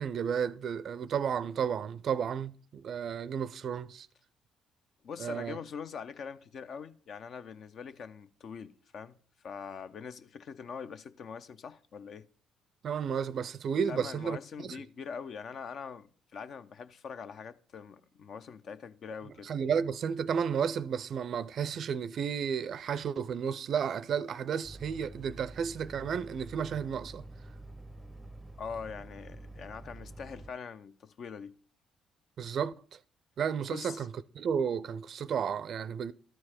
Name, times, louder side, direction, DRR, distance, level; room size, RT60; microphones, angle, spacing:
voice 1, 0.0-4.1 5.2-5.6 12.8-14.4 14.6-14.8 19.4-27.2 32.4-32.7 33.4-36.1, right 7 dB, 55° right, 0.4 m, -32 dB
voice 2, 5.0-9.2 9.4-12.3 13.9-19.5 28.6-31.5 33.7-34.1, left 6 dB, 55° left, 0.5 m, -43 dB
sound 1, 24.6-30.5, right 2 dB, 5° right, 0.6 m, -48 dB
12.5 x 4.7 x 4.3 m
hypercardioid pair, 50°, 0 cm